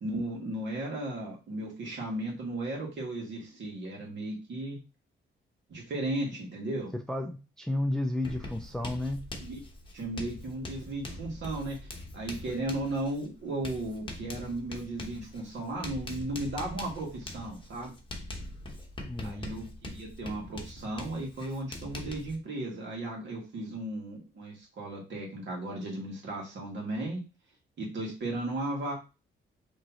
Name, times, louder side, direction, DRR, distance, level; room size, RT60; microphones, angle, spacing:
voice 1, 0.0-4.8 5.7-6.9 9.4-9.6 9.9-11.8 12.1-17.9 19.2-27.2 27.8-28.9, right 1 dB, 60° right, -1 dB, 1.9 m, -35 dB
voice 2, 7.1-9.2 19.1-19.5, left 1 dB, 5° left, 6 dB, 0.4 m, -32 dB
Writing, 8.2-22.4, left 2 dB, 25° left, 0.9 m, -43 dB
5.1 x 3.1 x 2.8 m, 0.30 s
cardioid pair, 145°, 21 cm